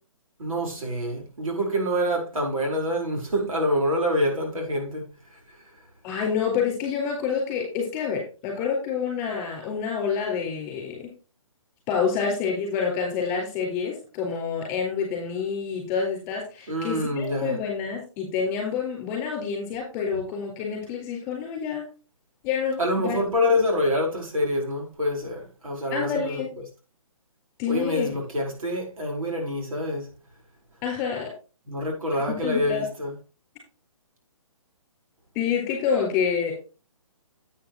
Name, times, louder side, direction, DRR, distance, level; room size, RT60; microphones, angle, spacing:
voice 1, 0.4-5.0 16.7-17.6 22.8-26.4 27.7-30.1 31.7-33.1, left 1 dB, 75° right, 4.5 m, -26 dB
voice 2, 6.0-11.1 11.9-21.8 22.4-23.2 25.9-26.5 27.6-28.1 30.8-31.3 32.4-32.9 35.3-36.5, left 6 dB, 20° left, 4.3 m, -28 dB
10.0 x 8.6 x 3.0 m
hypercardioid pair, 160°, 18 cm